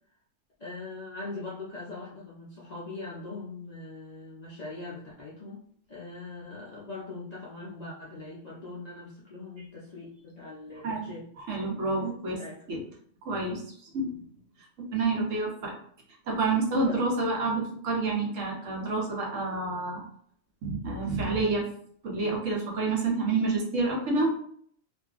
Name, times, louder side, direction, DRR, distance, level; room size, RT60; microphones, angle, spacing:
voice 1, 0.6-5.6 5.9-11.2 12.2-12.6 16.7-17.1, left 3 dB, 55° left, -7 dB, 0.5 m, -41 dB
voice 2, 11.5-12.4 12.7-12.8 13.2-13.6 13.9-14.1 14.8-15.7 16.3-20.0 20.6-21.7 22.0-24.3, right 3 dB, 80° right, -2 dB, 1.2 m, -28 dB
2.6 x 2.4 x 2.4 m, 0.62 s
omnidirectional pair, 1.3 m